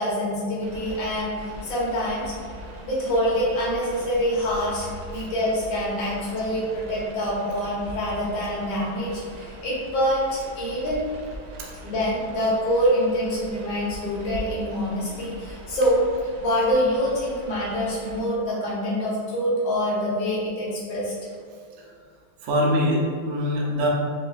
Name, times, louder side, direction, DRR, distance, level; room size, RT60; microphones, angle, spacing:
voice 1, 0.0-2.3 2.8-11.1 11.8-21.1, equal, 70° left, -7 dB, 1.9 m, -25 dB
sound 1, 0.6-18.3, right 1 dB, 70° right, 1.1 m, -41 dB
voice 2, 22.4-23.9, equal, 90° right, -3 dB, 0.6 m, -23 dB
4.7 x 3.2 x 2.4 m, 2.1 s
omnidirectional pair, 2.2 m